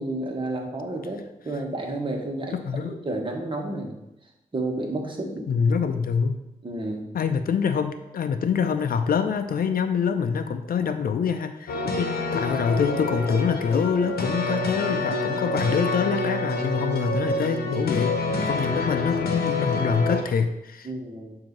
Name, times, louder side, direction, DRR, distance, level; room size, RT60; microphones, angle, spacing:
voice 1, 0.0-2.6 3.0-4.0 4.5-5.5 6.6-7.1 20.8-21.4, right 2 dB, 35° right, 0 dB, 1.4 m, -31 dB
voice 2, 2.5-3.0 5.5-6.4 7.1-20.9, left 6 dB, 70° left, 8 dB, 0.5 m, -25 dB
sound 1, 11.7-20.2, left 2 dB, 85° left, 0.9 m, -27 dB
7.5 x 2.8 x 5.3 m, 0.92 s
cardioid pair, 65°, 16 cm